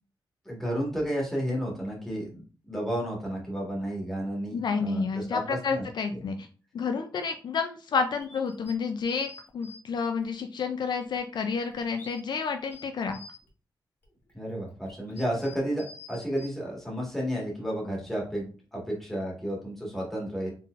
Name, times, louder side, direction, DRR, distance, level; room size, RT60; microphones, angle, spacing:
voice 1, 0.4-6.2 14.3-20.5, equal, 5° left, -3 dB, 1.6 m, -32 dB
voice 2, 4.5-6.4 6.7-13.2, left 5 dB, 65° left, 6 dB, 0.4 m, -30 dB
sound 1, 8.2-9.8 10.2-10.3 11.0-12.2 12.6-13.5 14.0-16.5, left 3 dB, 25° left, 1.5 m, -48 dB
4.0 x 3.7 x 2.5 m, 0.38 s
wide cardioid pair, 140°, 8 cm